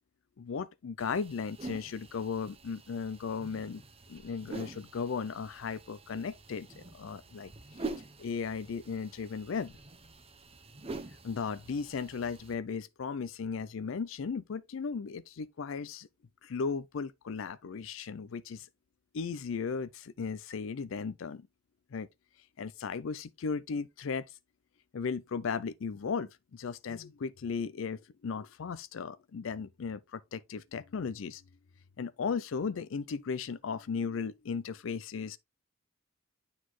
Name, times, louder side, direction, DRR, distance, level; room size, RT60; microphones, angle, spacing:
voice 1, 0.4-3.8 4.1-7.5 7.8-7.9 8.2-9.7 11.2-16.1 16.4-18.7 19.1-21.5 21.9-22.1 22.6-24.3 24.9-31.4 32.0-35.4, left 5 dB, 70° left, 0.4 m, -36 dB
sound 1, 1.0-12.5, right 3 dB, 30° right, 0.8 m, -46 dB
9.5 x 4.0 x 3.1 m
head